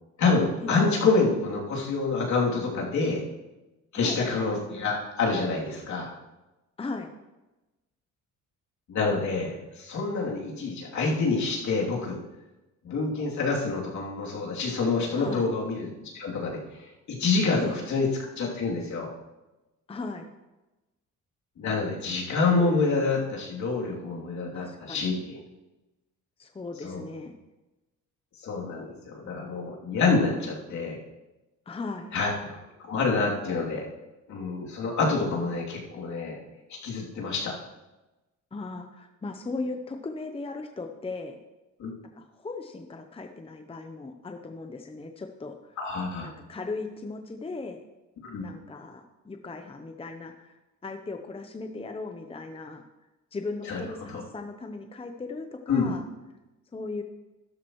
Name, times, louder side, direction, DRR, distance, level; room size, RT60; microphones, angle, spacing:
voice 1, 0.2-3.2 3.9-6.1 8.9-12.2 12.8-19.1 21.6-25.4 26.8-27.0 28.4-31.0 32.1-32.6 32.9-33.9 34.3-36.4 36.7-37.5 41.8-41.9 45.8-46.3 48.2-48.4 53.7-53.8 54.1-54.2 55.7-55.9, left 4 dB, 65° left, -3 dB, 3.1 m, -27 dB
voice 2, 6.8-7.1 15.1-15.4 17.6-17.9 19.9-20.3 24.5-25.2 26.4-27.3 30.4-30.5 31.7-32.1 38.5-41.4 42.1-45.8 46.2-47.8 48.4-52.8 53.3-56.1 56.7-57.0, left 3 dB, 20° left, 5 dB, 0.8 m, -37 dB
12.5 x 11.5 x 3.1 m, 1.1 s
cardioid pair, 105°, 31 cm